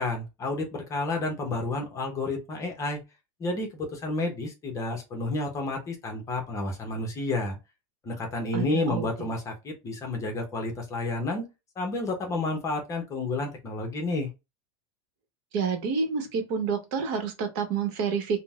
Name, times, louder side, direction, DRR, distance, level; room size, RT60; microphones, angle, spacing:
voice 1, 0.0-3.0 3.4-7.6 8.0-11.4 11.8-14.3, left 2 dB, 20° left, 0.8 m, -30 dB
voice 2, 8.5-9.1 15.5-18.4, right 5 dB, 50° right, 1.0 m, -28 dB
3.8 x 2.1 x 2.3 m
supercardioid pair, 155°, 15 cm